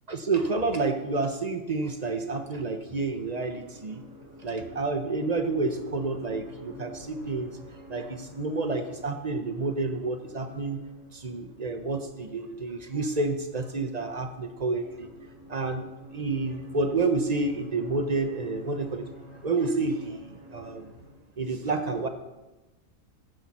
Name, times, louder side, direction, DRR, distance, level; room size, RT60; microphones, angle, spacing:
voice 1, 0.1-4.0 4.4-7.5 7.9-10.8 11.1-15.1 15.5-15.8 16.1-19.0 19.4-20.9 21.4-22.1, right 3 dB, 35° right, 8 dB, 0.9 m, -29 dB
sound 1, 1.7-21.1, left 1 dB, 20° right, 4.6 m, -49 dB
14.5 x 10.5 x 4.2 m, 1.1 s
omnidirectional pair, 1.3 m